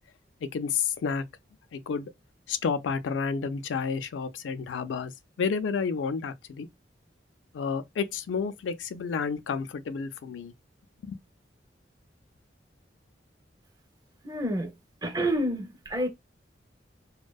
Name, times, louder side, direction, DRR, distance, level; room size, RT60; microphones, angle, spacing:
voice 1, 0.4-1.2 1.7-2.1 2.5-5.1 5.4-6.7 7.5-10.5 11.0-11.2, left 5 dB, 90° left, 0.4 m, -30 dB
voice 2, 14.2-14.8 15.0-16.1, right 1 dB, 20° right, 0.5 m, -28 dB
2.6 x 2.1 x 2.2 m
head